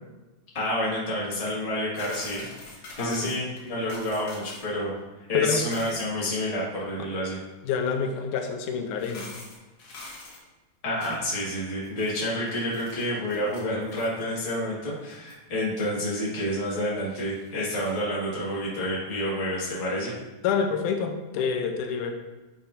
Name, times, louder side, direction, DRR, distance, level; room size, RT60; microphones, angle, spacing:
voice 1, 0.5-2.5 3.0-4.9 5.3-7.4 10.8-20.1, left 1 dB, 20° left, -7 dB, 1.0 m, -29 dB
sound 1, 1.9-4.7 5.0-5.1 5.4-6.1 8.0-8.1 8.9-10.4 11.0-11.3 11.8-14.2 14.5-14.6 15.1-15.3 15.8-15.9 17.0-18.0, left 2 dB, 60° left, 1.8 m, -45 dB
voice 2, 3.0-3.3 5.3-5.6 7.6-9.3 20.4-22.1, left 6 dB, 90° left, 5 dB, 2.2 m, -27 dB
9.1 x 5.5 x 2.6 m, 1.1 s
omnidirectional pair, 3.5 m